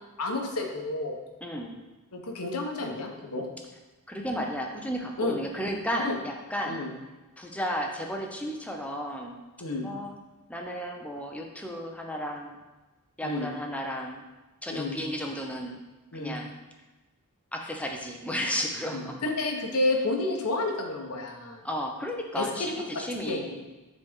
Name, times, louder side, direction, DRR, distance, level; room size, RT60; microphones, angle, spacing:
voice 1, 0.2-1.2 2.1-3.5 5.2-5.4 6.0-6.1 6.7-6.9 9.6-9.9 13.2-13.5 14.7-15.0 16.1-16.4 18.9-21.6 22.4-22.5 23.3-23.4, left 2 dB, 75° left, 2 dB, 1.1 m, -30 dB
voice 2, 1.4-1.8 4.1-6.8 7.4-9.4 9.8-10.1 10.5-12.6 13.2-14.3 14.6-15.8 16.1-16.5 17.5-19.2 21.6-23.5, equal, 5° left, 1 dB, 0.7 m, -33 dB
10.0 x 4.1 x 3.6 m, 1.1 s
head